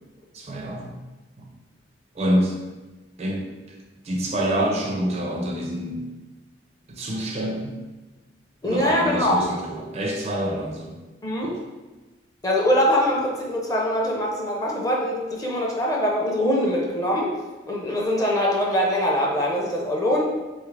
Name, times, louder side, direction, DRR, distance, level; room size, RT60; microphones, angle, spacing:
voice 1, 0.3-1.0 1.4-1.5 2.2-2.7 3.2-3.8 4.0-6.1 6.9-7.8 8.6-11.0 11.4-11.6, equal, 35° right, 1 dB, 0.4 m, -27 dB
voice 2, 8.6-9.4 11.2-11.5 12.4-17.3 17.7-20.3, left 1 dB, 20° left, -2 dB, 0.5 m, -23 dB
3.4 x 2.4 x 3.2 m, 1.2 s
head